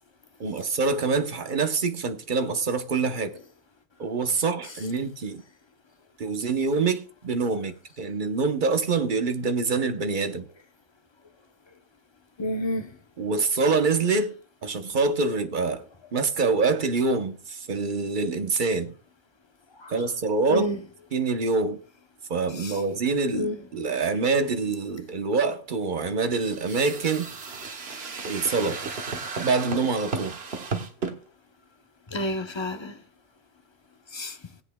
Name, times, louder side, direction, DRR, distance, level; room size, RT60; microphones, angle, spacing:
voice 1, 0.4-3.4 4.0-5.4 6.2-10.5 13.2-14.3 14.6-18.9 19.9-20.7 21.1-21.8 22.3-27.3 28.2-28.8 29.4-30.4, right 4 dB, 50° right, 1.0 m, -25 dB
voice 2, 12.4-12.9 19.8-19.9 20.5-20.8 22.5-22.8 23.3-23.6 29.4-29.5 32.1-33.0 34.1-34.4, left 1 dB, 30° left, 0.7 m, -29 dB
sound 1, 26.3-31.1, right 4 dB, 75° right, 1.3 m, -34 dB
18.5 x 8.3 x 2.2 m
omnidirectional pair, 1.1 m